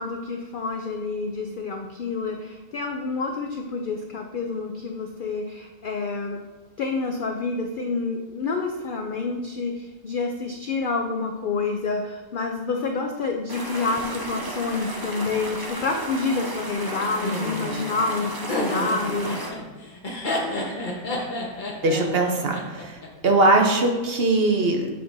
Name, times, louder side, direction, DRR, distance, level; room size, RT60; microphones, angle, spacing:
voice 1, 0.0-6.4 6.8-19.5, left 4 dB, 80° left, 3 dB, 0.4 m, -28 dB
sound 1, 13.5-19.5, right 1 dB, 25° right, 0.4 m, -34 dB
Laughter, 17.2-23.3, left 1 dB, 40° left, 1.1 m, -30 dB
voice 2, 21.8-24.9, right 2 dB, 55° right, 3 dB, 0.8 m, -21 dB
7.8 x 5.2 x 2.6 m, 1.2 s
omnidirectional pair, 1.5 m